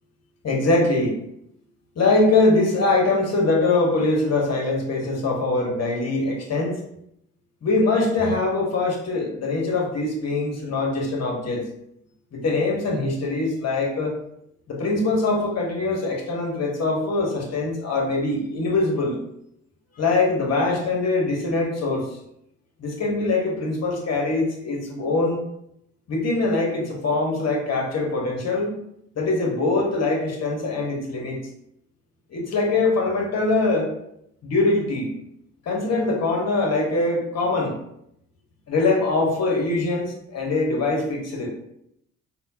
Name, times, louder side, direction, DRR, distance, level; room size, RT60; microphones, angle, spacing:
voice 1, 0.4-1.2 2.0-6.8 7.6-11.6 12.3-14.2 14.7-19.2 20.0-22.1 22.8-25.4 26.1-28.7 29.2-31.4 32.3-33.9 34.4-35.1 35.7-37.7 38.7-41.5, left 3 dB, 40° left, -1 dB, 1.0 m, -23 dB
3.6 x 2.2 x 2.7 m, 0.77 s
hypercardioid pair, 45°, 38 cm